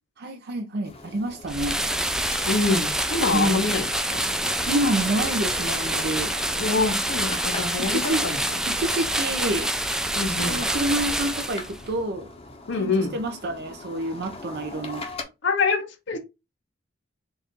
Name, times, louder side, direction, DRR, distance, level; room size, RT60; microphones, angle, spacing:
voice 1, 0.2-1.8 3.3-3.8 4.7-6.3 7.8-8.3 8.7-9.7 10.2-12.3 12.8-15.0, right 1 dB, 55° right, 0.6 m, -28 dB
sound 1, 0.8-15.2, left 3 dB, 30° left, 0.7 m, -41 dB
sound 2, 1.5-11.9, right 1 dB, 5° right, 0.3 m, -26 dB
voice 2, 2.5-4.3 6.5-8.6 10.2-10.6 12.7-13.1 15.4-16.2, left 4 dB, 65° left, 0.7 m, -26 dB
4.1 x 2.5 x 3.6 m
head